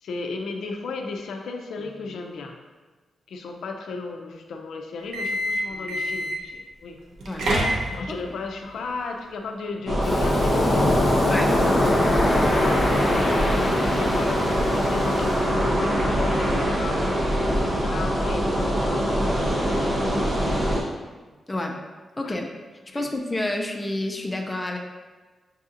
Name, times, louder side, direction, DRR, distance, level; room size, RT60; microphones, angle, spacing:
voice 1, 0.0-2.6 3.3-7.0 7.9-11.7 12.0-17.0 17.5-20.7 22.2-22.4 22.9-23.0, left 3 dB, 85° left, 3 dB, 0.4 m, -34 dB
sound 1, 5.0-6.5 7.1-8.2, equal, 80° right, 0.7 m, -26 dB
sound 2, 9.9-20.8, equal, 45° right, 0.9 m, -23 dB
Waves surf, 10.0-15.5, left 2 dB, 35° left, 0.7 m, -24 dB
voice 2, 22.2-22.5 22.9-24.8, left 1 dB, 10° left, 2 dB, 0.4 m, -29 dB
6.6 x 2.7 x 2.5 m, 1.3 s
wide cardioid pair, 170°, 0 cm